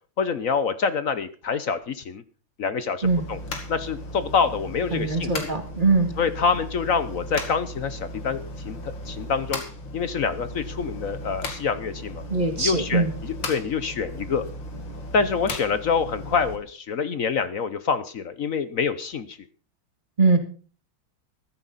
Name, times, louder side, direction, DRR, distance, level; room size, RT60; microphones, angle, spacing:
voice 1, 0.2-2.2 2.6-3.4 3.7-5.5 6.2-8.4 8.6-9.6 9.9-12.2 12.6-14.4 15.1-19.4, left 5 dB, 55° left, 13 dB, 1.0 m, -26 dB
sound 1, 3.0-16.6, left 1 dB, 70° left, 3.0 m, -36 dB
voice 2, 4.9-6.1 12.3-13.1 20.2-20.4, right 3 dB, 25° right, 5 dB, 2.4 m, -21 dB
15.5 x 13.5 x 4.1 m, 0.39 s
omnidirectional pair, 2.2 m